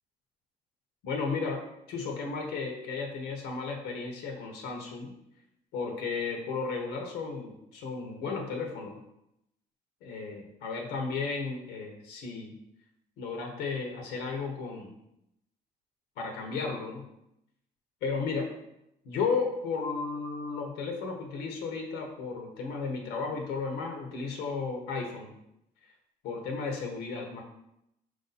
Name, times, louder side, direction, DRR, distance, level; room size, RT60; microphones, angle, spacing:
voice 1, 1.0-1.6 1.9-5.1 5.7-9.0 10.0-12.5 13.2-14.9 16.2-17.0 18.0-18.5 19.0-25.3 26.2-27.4, left 4 dB, 90° left, 2 dB, 0.9 m, -34 dB
4.8 x 2.6 x 4.0 m, 0.82 s
cardioid pair, 110°, 17 cm